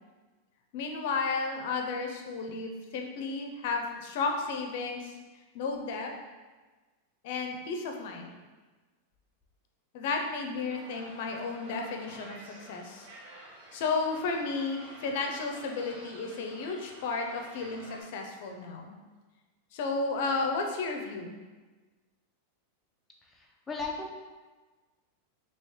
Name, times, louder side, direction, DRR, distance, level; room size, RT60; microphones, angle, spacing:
voice 1, 0.7-5.1 5.5-6.1 7.2-8.4 9.9-13.1 13.7-18.9 19.7-21.4, left 4 dB, 65° left, 2 dB, 0.7 m, -33 dB
sound 1, 10.7-18.0, right 2 dB, 85° right, 1.0 m, -50 dB
voice 2, 23.2-24.1, left 3 dB, 15° left, -1 dB, 0.7 m, -37 dB
3.2 x 3.0 x 4.5 m, 1.3 s
hypercardioid pair, 115°, 0 cm